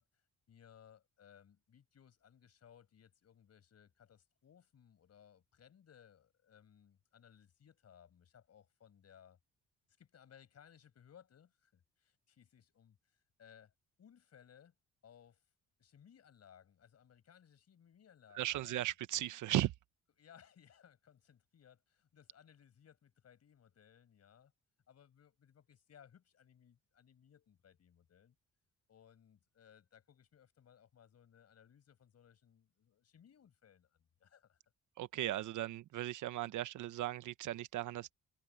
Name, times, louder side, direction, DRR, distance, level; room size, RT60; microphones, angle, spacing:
voice 1, 0.0-9.4 10.0-13.7 14.0-14.7 15.0-15.4 15.8-18.9 20.2-24.5 24.9-28.3 28.9-34.6, left 8 dB, 55° left, 6.3 m, -63 dB
voice 2, 18.3-19.7 35.0-38.1, right 14 dB, 80° right, 1.1 m, -37 dB
cardioid pair, 90°, 30 cm